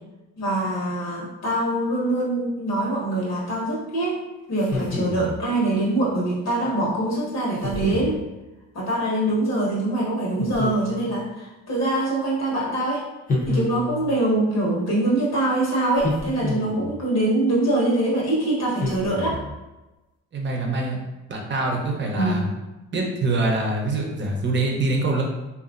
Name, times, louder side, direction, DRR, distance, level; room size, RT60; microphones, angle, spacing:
voice 1, 0.4-4.2 4.5-8.2 8.7-13.0 13.4-19.4 22.1-22.4, right 1 dB, 60° left, -4 dB, 1.2 m, -24 dB
sound 1, 4.6-5.4 7.6-8.2 10.4-11.2 13.3-14.2 16.0-17.0 18.8-19.6, left 2 dB, 25° left, 0.8 m, -28 dB
voice 2, 20.3-21.0 21.3-22.5 22.9-25.2, right 2 dB, 40° right, 0 dB, 0.7 m, -24 dB
2.9 x 2.4 x 2.5 m, 1.0 s
cardioid pair, 90°, 30 cm